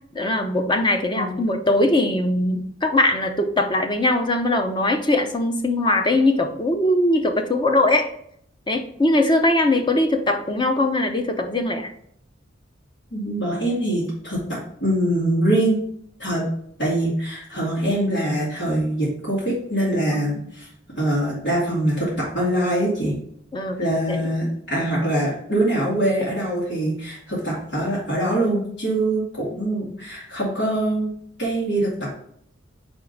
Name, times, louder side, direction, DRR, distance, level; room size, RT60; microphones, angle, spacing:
voice 1, 0.1-8.1 8.7-11.9 20.1-20.4 23.5-24.9, left 1 dB, 25° left, 5 dB, 0.7 m, -21 dB
voice 2, 13.1-15.8 16.2-16.5 16.8-20.7 21.0-23.2 23.8-31.1 31.4-32.2, right 1 dB, 80° left, -10 dB, 2.5 m, -23 dB
4.9 x 3.6 x 5.3 m, 0.67 s
head